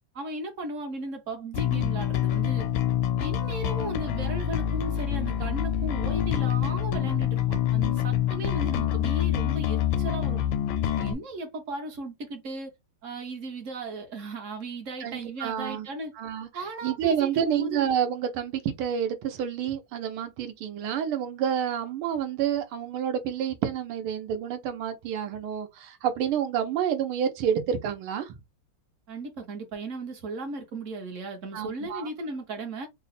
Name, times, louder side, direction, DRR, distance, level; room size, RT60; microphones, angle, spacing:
voice 1, 0.1-2.7 3.2-10.4 11.0-12.7 13.0-16.1 16.5-17.8 29.1-32.9, right 2 dB, 50° right, 1.0 m, -36 dB
Bass guitar, 1.5-11.1, left 10 dB, 75° left, 1.2 m, -26 dB
voice 2, 15.0-15.9 16.2-16.5 16.8-28.3 31.5-32.1, right 9 dB, 85° right, 1.7 m, -29 dB
3.9 x 2.1 x 4.0 m
omnidirectional pair, 2.3 m